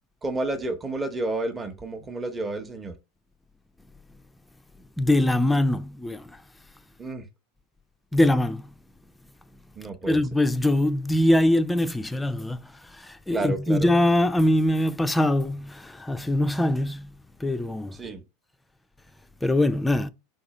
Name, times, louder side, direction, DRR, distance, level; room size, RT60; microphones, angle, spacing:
voice 1, 0.2-2.9 7.0-7.2 9.8-10.3 13.3-13.9 17.9-18.2, right 2 dB, 20° right, 0.8 m, -30 dB
voice 2, 5.0-6.4 8.1-8.7 10.1-17.1 17.4-18.0 19.4-20.1, left 1 dB, 5° left, 0.4 m, -23 dB
4.0 x 2.6 x 4.1 m
hypercardioid pair, 85°, 0 cm